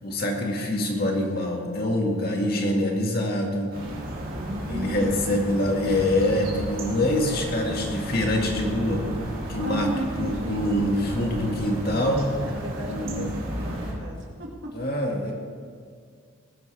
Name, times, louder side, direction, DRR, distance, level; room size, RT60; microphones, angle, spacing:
voice 1, 0.0-3.7 4.7-9.1 9.5-9.9 10.2-12.3 12.9-13.3 14.7-15.3, left 1 dB, 45° left, 0 dB, 2.0 m, -25 dB
sound 1, 3.7-13.9, right 1 dB, 45° right, 3.0 m, -33 dB
sound 2, 4.2-12.2, equal, 20° right, 4.4 m, -45 dB
voice 2, 4.3-5.5 9.6-10.6 12.4-14.7, right 1 dB, 60° right, -2 dB, 2.3 m, -35 dB
20.0 x 12.0 x 3.4 m, 2.2 s
head